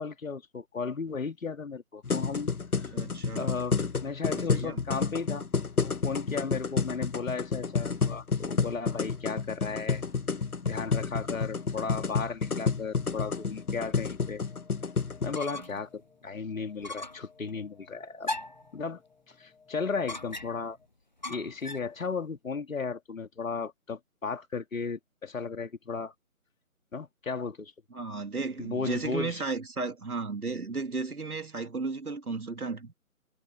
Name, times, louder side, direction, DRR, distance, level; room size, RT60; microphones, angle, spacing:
voice 1, 0.0-2.5 3.4-5.5 5.8-10.0 10.6-14.4 15.2-18.3 18.7-19.0 19.3-20.8 21.3-26.1 26.9-27.7 28.6-29.4, left 4 dB, 65° left, 2.8 m, -35 dB
sound 1, 2.0-15.4, left 5 dB, 85° left, 1.3 m, -30 dB
voice 2, 2.9-3.5 4.3-4.8 27.9-32.9, right 4 dB, 85° right, 3.1 m, -34 dB
sound 2, 9.6-20.9, left 5 dB, 5° left, 3.8 m, -61 dB
sound 3, 15.1-15.9 16.2-16.3 16.8-17.3 18.2-18.7 20.1-20.7 21.2-21.9, left 2 dB, 35° left, 0.5 m, -38 dB
figure-of-eight pair, 155°, 43 cm